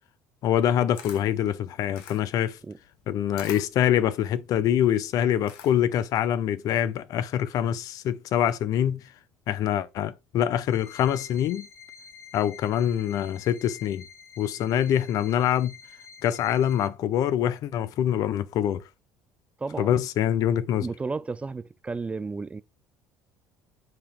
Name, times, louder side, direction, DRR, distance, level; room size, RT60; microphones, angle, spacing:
voice 1, 0.4-2.6 3.1-9.0 9.5-11.7 12.3-14.0 14.4-15.8 16.2-18.8 19.8-20.9, left 10 dB, 60° left, 0.6 m, -25 dB
Camera, 1.0-6.0, left 8 dB, 80° left, 1.4 m, -46 dB
sound 1, 10.6-16.9, left 7 dB, 40° left, 1.5 m, -48 dB
voice 2, 19.6-20.0 20.8-22.6, right 4 dB, 20° right, 0.4 m, -33 dB
7.5 x 2.9 x 5.2 m
supercardioid pair, 95°, 7 cm